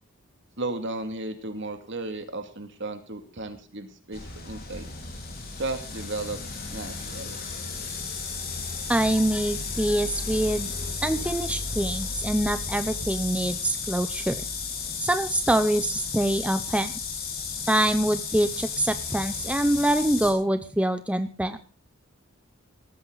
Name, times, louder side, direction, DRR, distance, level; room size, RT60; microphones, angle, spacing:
voice 1, 0.6-4.9 5.6-7.4, right 2 dB, 55° right, 6 dB, 2.6 m, -34 dB
sound 1, 4.1-20.3, left 4 dB, 45° left, 4.5 m, -33 dB
voice 2, 8.9-10.7 11.0-14.4 15.0-16.9 17.7-21.6, right 1 dB, 5° right, 9 dB, 0.7 m, -25 dB
18.0 x 14.0 x 4.1 m, 0.37 s
head